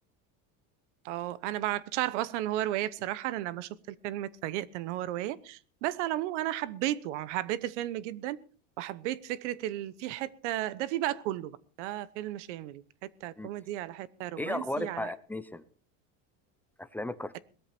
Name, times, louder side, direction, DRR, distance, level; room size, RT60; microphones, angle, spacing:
voice 1, 1.0-8.4 8.8-15.1, right 14 dB, 90° right, 1.0 m, -34 dB
voice 2, 14.4-15.6 16.8-17.4, left 1 dB, 5° left, 0.7 m, -35 dB
18.5 x 13.5 x 4.4 m
cardioid pair, 145°, 35 cm